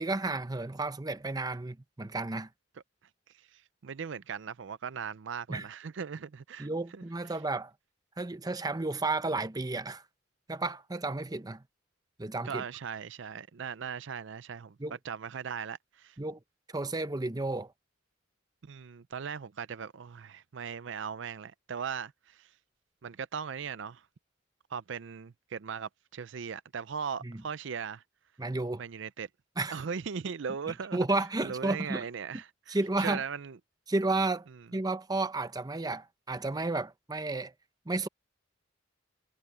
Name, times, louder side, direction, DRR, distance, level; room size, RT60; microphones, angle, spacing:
voice 1, 0.0-2.5 5.5-5.7 6.6-7.7 8.2-10.0 10.5-11.6 12.2-12.6 14.8-15.0 16.2-16.4 16.7-17.7 27.2-27.4 28.4-28.8 29.6-29.8 30.9-32.0 32.7-33.2 33.9-34.5 34.7-37.5 37.9-38.1, right 2 dB, 20° right, 0.7 m, -32 dB
voice 2, 3.5-7.0 12.4-14.8 15.0-16.2 18.6-22.5 23.0-24.0 24.7-28.0 28.8-29.3 29.7-31.0 31.4-33.6, right 6 dB, 65° right, 0.5 m, -38 dB
head